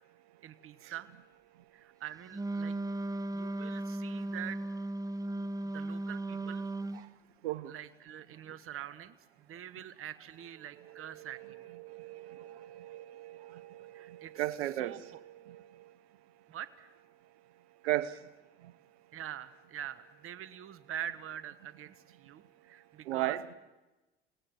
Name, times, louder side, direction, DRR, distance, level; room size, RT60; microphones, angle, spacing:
voice 1, 0.4-1.1 1.7-2.7 3.3-4.6 5.7-6.7 7.7-11.6 13.5-13.6 13.9-14.4 14.8-15.0 16.5-16.9 19.1-23.5, right 10 dB, 45° right, 1.3 m, -45 dB
Wind instrument woodwind instrument, 2.3-7.1, right 2 dB, 10° right, 0.9 m, -36 dB
voice 2, 10.9-15.9 17.8-18.2 23.1-23.5, right 14 dB, 85° right, 1.1 m, -37 dB
27.5 x 17.5 x 7.8 m
hypercardioid pair, 80°, 31 cm